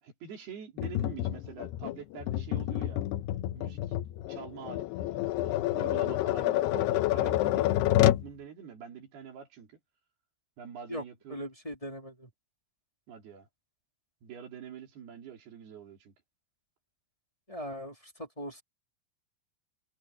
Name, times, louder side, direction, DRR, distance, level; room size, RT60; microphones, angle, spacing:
voice 1, 0.0-3.0 3.5-3.9 4.3-9.8 10.6-11.5 13.1-13.5 14.2-16.1, right 7 dB, 70° right, 5.5 m, -46 dB
Tap, 0.8-8.3, left 14 dB, 85° left, 2.8 m, -28 dB
voice 2, 11.3-12.3 17.5-18.6, equal, 10° left, 2.5 m, -39 dB
omnidirectional pair, 4.8 m